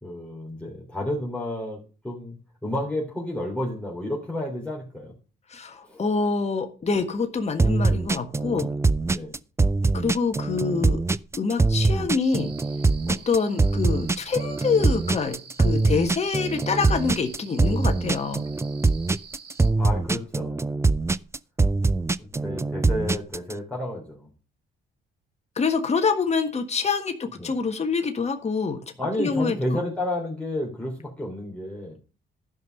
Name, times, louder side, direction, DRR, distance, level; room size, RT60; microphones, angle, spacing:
voice 1, 0.0-2.4 2.6-5.1 5.8-6.0 9.1-9.4 19.8-20.7 22.2-24.3 27.4-27.6 29.0-32.0, left 1 dB, 5° left, -3 dB, 3.4 m, -31 dB
voice 2, 5.5-8.7 9.9-11.0 11.4-12.5 13.1-18.4 25.6-28.8 29.2-29.8, left 5 dB, 35° left, 6 dB, 1.5 m, -26 dB
sound 1, 7.6-23.5, right 3 dB, 15° right, 0.4 m, -23 dB
sound 2, 12.2-19.7, right 6 dB, 55° right, 2.3 m, -47 dB
12.0 x 5.5 x 6.5 m, 0.37 s
cardioid pair, 90°, 20 cm